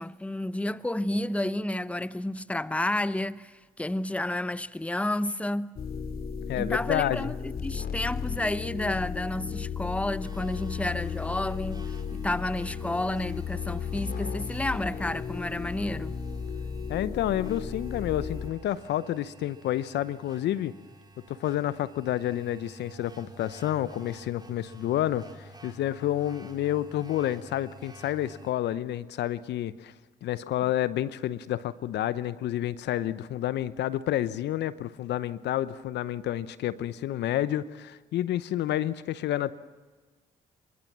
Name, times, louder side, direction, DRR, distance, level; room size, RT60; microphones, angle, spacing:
voice 1, 0.0-5.8 6.6-16.2, left 1 dB, 5° left, 0.9 m, -31 dB
sound 1, 5.8-18.5, left 6 dB, 55° left, 2.7 m, -35 dB
voice 2, 6.5-7.3 16.9-20.7 21.3-29.9 30.2-39.5, left 12 dB, 70° left, 0.9 m, -29 dB
sound 2, 10.2-28.5, right 1 dB, 20° right, 3.8 m, -51 dB
26.5 x 24.0 x 7.5 m
hypercardioid pair, 50°, 18 cm